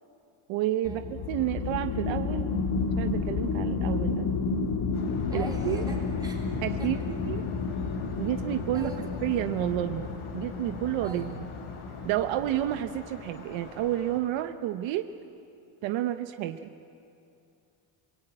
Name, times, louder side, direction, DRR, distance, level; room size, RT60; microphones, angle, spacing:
voice 1, 0.5-1.0 1.3-4.3 5.3-5.8 6.6-7.4 8.2-8.9 9.2-10.1 10.3-11.5 12.0-15.1 15.8-16.7, right 13 dB, 65° right, 7 dB, 1.0 m, -30 dB
sound 1, 0.8-12.9, left 4 dB, 55° left, 1.8 m, -31 dB
sound 2, 4.9-14.2, left 2 dB, 85° left, 6.5 m, -42 dB
voice 2, 5.3-6.5 6.8-6.9 8.7-9.1 11.0-11.3, right 1 dB, 10° right, -2 dB, 3.7 m, -42 dB
27.0 x 22.0 x 9.0 m, 2.7 s
cardioid pair, 165°, 49 cm